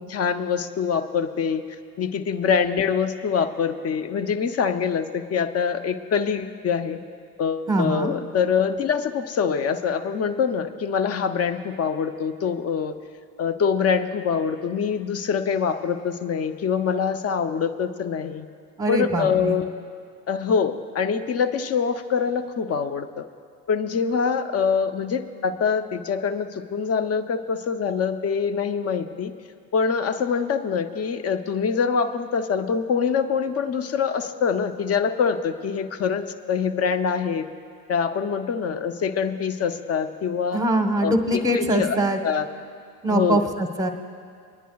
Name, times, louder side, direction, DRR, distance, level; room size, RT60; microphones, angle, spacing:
voice 1, 0.1-1.6 2.0-7.0 7.4-13.0 13.4-18.4 18.9-19.7 20.3-23.3 23.7-29.3 29.7-37.5 37.9-40.6 41.0-41.1 41.5-42.0 42.2-42.5 43.1-43.5, left 6 dB, 30° left, 10 dB, 0.6 m, -24 dB
voice 2, 7.7-8.2 18.8-19.6 40.5-42.2 43.0-43.9, right 1 dB, 10° right, 5 dB, 1.0 m, -23 dB
27.5 x 10.0 x 2.3 m, 2.1 s
hypercardioid pair, 70°, 48 cm